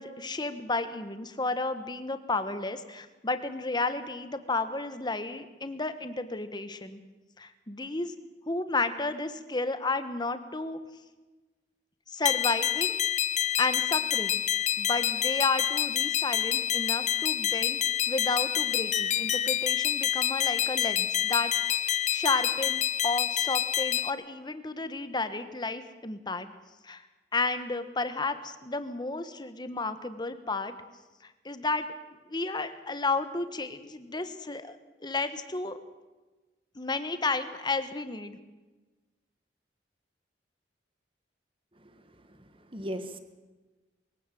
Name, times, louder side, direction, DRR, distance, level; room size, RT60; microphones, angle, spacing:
voice 1, 0.0-7.0 7.4-8.1 8.5-10.8 12.1-13.0 13.6-14.4 14.8-17.8 18.1-21.5 21.8-26.5 26.8-27.0 27.3-30.7 31.2-31.9 32.3-35.8 36.7-38.4, left 3 dB, 25° left, 10 dB, 1.4 m, -32 dB
sound 1, 12.3-24.1, left 10 dB, 40° left, 0.6 m, -27 dB
voice 2, 41.8-42.4 42.7-43.2, equal, 30° right, 9 dB, 1.7 m, -39 dB
22.5 x 16.5 x 7.8 m, 1.2 s
head